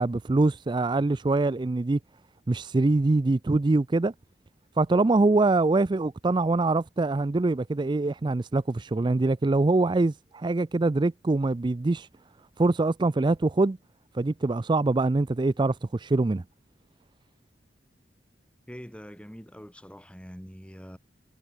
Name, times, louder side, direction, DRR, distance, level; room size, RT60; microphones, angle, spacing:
voice 1, 0.0-2.0 2.5-4.1 4.8-12.1 12.6-13.8 14.1-16.4, right 2 dB, 25° right, 0.4 m, -24 dB
voice 2, 18.7-21.0, equal, 5° left, 3.6 m, -44 dB
head